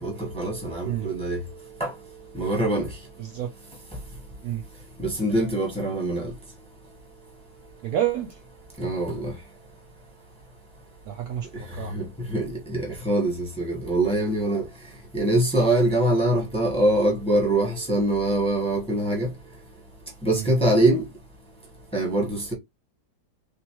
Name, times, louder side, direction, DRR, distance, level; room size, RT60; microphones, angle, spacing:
voice 1, 0.0-1.4 1.8-1.9 2.4-2.9 5.0-6.2 8.8-9.2 11.9-12.0 12.3-12.5 12.7-13.3 13.6-14.6 15.1-19.3 20.2-21.0 21.9-22.5, right 1 dB, 5° left, 1.1 m, -23 dB
voice 2, 3.2-3.5 4.4-4.6 7.8-8.4 11.0-11.9 20.3-20.5, right 11 dB, 70° right, 1.0 m, -29 dB
3.6 x 3.0 x 2.9 m
omnidirectional pair, 2.0 m